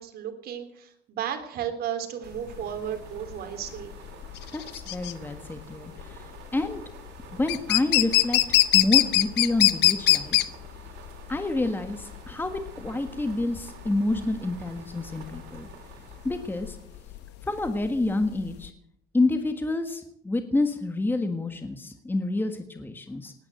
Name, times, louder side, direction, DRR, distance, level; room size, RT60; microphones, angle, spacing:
voice 1, 0.0-3.9, right 9 dB, 65° right, 6 dB, 3.2 m, -34 dB
sound 1, 2.0-17.4, right 7 dB, 85° right, 3.5 m, -49 dB
sound 2, 2.3-18.7, left 16 dB, 85° left, 1.0 m, -24 dB
voice 2, 4.5-6.2 6.5-6.8 7.3-10.4 11.3-15.7 16.2-16.8 17.4-18.7 19.1-23.3, left 2 dB, 10° left, 7 dB, 1.5 m, -28 dB
18.5 x 9.9 x 7.7 m, 0.70 s
cardioid pair, 110°, 17 cm